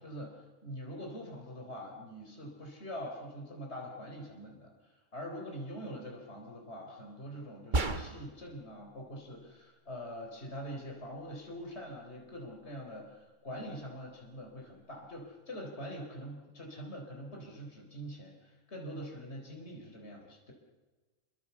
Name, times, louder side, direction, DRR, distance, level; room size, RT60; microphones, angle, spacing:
voice 1, 0.0-20.5, equal, 55° left, 1 dB, 4.4 m, -44 dB
sound 1, 7.7-8.5, right 2 dB, 40° right, 1.5 m, -31 dB
27.5 x 24.5 x 7.0 m, 1.3 s
omnidirectional pair, 1.3 m